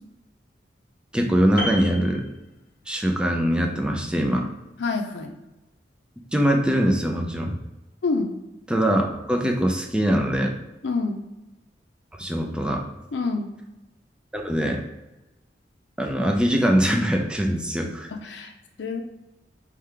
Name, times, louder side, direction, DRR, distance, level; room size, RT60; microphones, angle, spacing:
voice 1, 1.1-2.2 2.9-4.5 6.3-7.6 8.7-10.5 12.2-12.8 14.3-14.8 16.0-18.1, equal, 5° right, 2 dB, 0.4 m, -22 dB
Piano, 1.6-3.0 3.3-3.5, equal, 50° left, 0.8 m, -33 dB
voice 2, 4.8-5.3 8.0-8.3 10.8-11.2 13.1-13.5 18.1-18.5 18.8-19.0, left 3 dB, 80° left, 3 dB, 0.5 m, -27 dB
3.7 x 3.2 x 3.3 m, 1.0 s
head